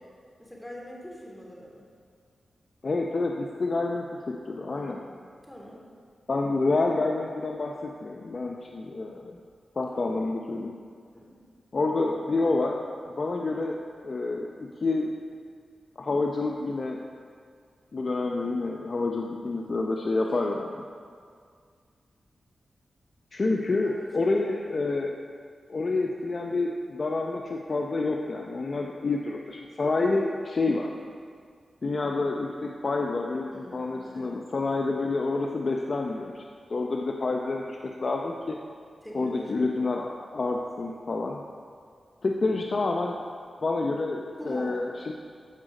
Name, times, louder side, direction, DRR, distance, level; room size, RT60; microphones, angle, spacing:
voice 1, 0.4-1.9 4.7-5.1 5.4-5.9 9.9-10.2 11.1-11.4 20.2-20.5 23.8-24.3 33.5-34.5 39.0-39.6 44.4-44.7, equal, 10° left, -3 dB, 2.9 m, -43 dB
voice 2, 2.8-5.0 6.3-9.4 9.8-10.7 11.7-12.8 13.1-15.1 16.0-17.0 17.9-20.7 23.3-25.2 25.7-30.9 31.8-36.4 36.7-38.6 39.1-41.4 42.2-43.3 43.6-45.1, left 3 dB, 55° left, 1 dB, 0.7 m, -28 dB
14.0 x 5.0 x 4.9 m, 2.1 s
cardioid pair, 45°, 0 cm